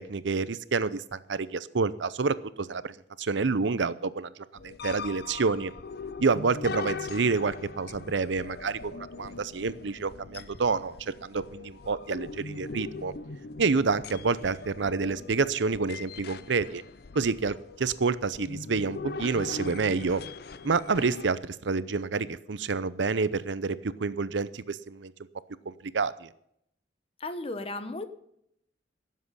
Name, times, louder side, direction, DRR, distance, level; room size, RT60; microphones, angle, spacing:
voice 1, 0.0-5.7 6.2-13.1 13.6-16.8 17.1-20.2 20.6-25.1 25.7-26.3, right 4 dB, 75° right, 16 dB, 0.7 m, -28 dB
sound 1, 4.6-21.3, left 4 dB, 55° left, 0.6 m, -41 dB
voice 2, 27.2-28.0, left 2 dB, 30° left, 10 dB, 1.0 m, -34 dB
17.0 x 7.5 x 5.6 m, 0.74 s
head